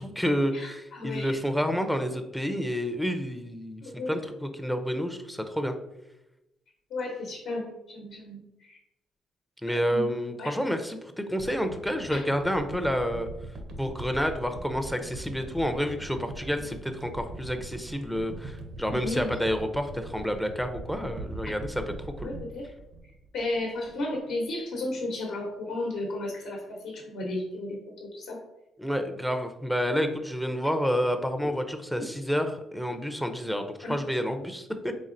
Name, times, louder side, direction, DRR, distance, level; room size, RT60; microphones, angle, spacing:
voice 1, 0.0-5.7 9.6-13.3 13.8-22.3 28.8-34.9, equal, ahead, 6 dB, 0.4 m, -29 dB
voice 2, 0.5-1.4 3.8-4.1 6.9-8.8 9.7-10.0 10.4-10.5 12.1-12.2 18.9-19.4 22.2-22.7 23.3-28.4 33.8-34.0, left 2 dB, 80° left, -1 dB, 0.9 m, -34 dB
sound 1, 11.4-23.7 24.0-24.2, right 2 dB, 70° right, 0.6 m, -41 dB
4.1 x 3.6 x 2.5 m, 0.91 s
cardioid pair, 90°, 0 cm